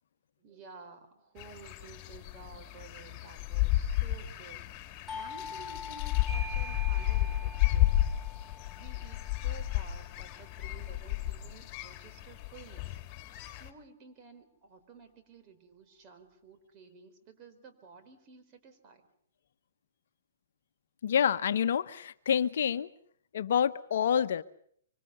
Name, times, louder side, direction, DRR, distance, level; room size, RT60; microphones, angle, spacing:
voice 1, 0.4-8.0 8.8-13.0 13.4-19.0, right 5 dB, 35° right, 7 dB, 4.4 m, -53 dB
sound 1, 1.4-13.7, left 15 dB, 30° left, 3.1 m, -32 dB
Doorbell, 5.1-10.4, left 3 dB, 5° right, 4.9 m, -44 dB
voice 2, 21.0-22.9 23.3-24.4, left 8 dB, 65° left, 12 dB, 1.0 m, -27 dB
25.5 x 25.0 x 6.9 m, 0.64 s
hypercardioid pair, 120°, 0 cm